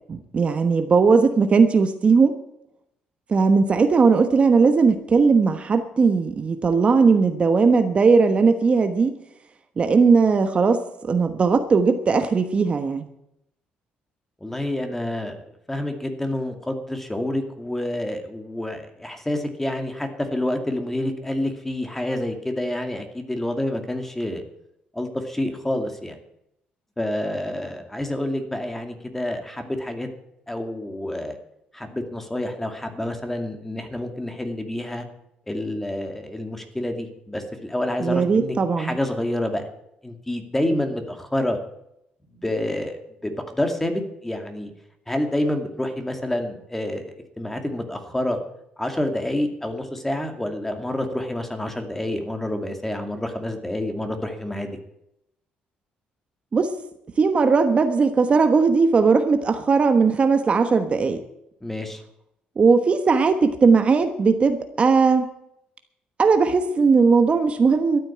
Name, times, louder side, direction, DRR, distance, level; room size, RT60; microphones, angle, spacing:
voice 1, 0.1-2.4 3.3-9.1 9.8-13.1 38.0-39.0 56.5-56.7 57.2-61.2 62.6-65.3 66.2-68.0, right 4 dB, 35° right, 8 dB, 1.2 m, -18 dB
voice 2, 14.4-24.4 24.9-26.2 27.0-30.1 30.5-31.4 31.7-35.1 35.5-39.7 40.0-41.6 42.3-44.7 45.1-48.4 48.8-54.8 61.6-62.0, left 1 dB, 10° left, 6 dB, 2.4 m, -28 dB
13.0 x 9.2 x 8.7 m, 0.79 s
cardioid pair, 110°, 3 cm